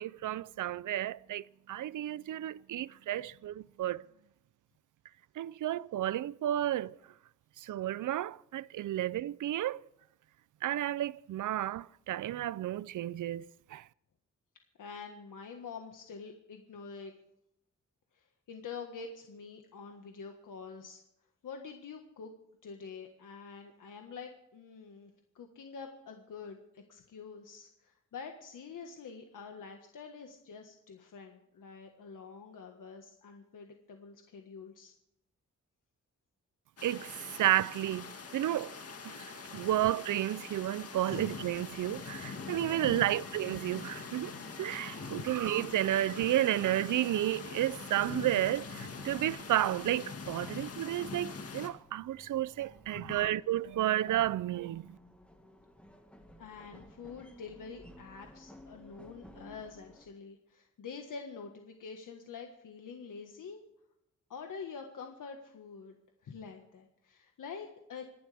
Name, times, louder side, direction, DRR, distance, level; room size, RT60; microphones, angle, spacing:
voice 1, 0.0-4.1 5.4-7.0 7.6-9.8 10.6-13.8 36.8-38.7 39.0-44.3 44.6-55.0, right 13 dB, 75° right, 0.5 m, -32 dB
voice 2, 14.8-17.1 18.1-21.0 21.4-22.3 22.6-34.9 39.5-39.7 41.0-41.2 42.4-43.0 45.0-45.3 50.4-50.7 52.9-53.2 56.4-63.6 64.3-65.9 66.2-68.1, left 5 dB, 85° left, 1.6 m, -46 dB
sound 1, 36.8-51.7, left 4 dB, 50° left, 2.1 m, -43 dB
sound 2, 40.5-60.1, equal, 5° left, 1.8 m, -59 dB
26.5 x 11.5 x 3.5 m
wide cardioid pair, 160°, 31 cm